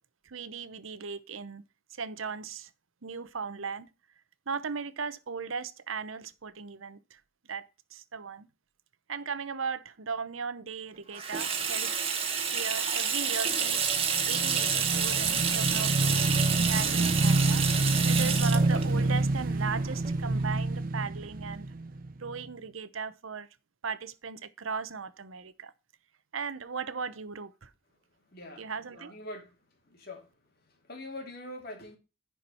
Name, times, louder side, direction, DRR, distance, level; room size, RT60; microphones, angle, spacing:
voice 1, 0.2-1.6 1.9-2.7 3.0-3.9 4.5-7.2 7.5-8.5 9.1-12.0 12.5-17.7 18.1-21.7 22.2-23.5 23.8-25.7 26.3-27.7 28.6-29.2, right 5 dB, 80° right, 0.9 m, -37 dB
Water tap faucet / Sink (filling or washing), 11.1-20.5, right 6 dB, 30° right, 1.5 m, -29 dB
Motorcycle / Engine, 13.9-22.4, right 2 dB, 45° right, 0.6 m, -28 dB
voice 2, 28.3-28.7 29.0-29.5 29.9-30.3 30.9-32.0, left 1 dB, 50° left, 2.6 m, -43 dB
10.5 x 4.8 x 5.6 m
head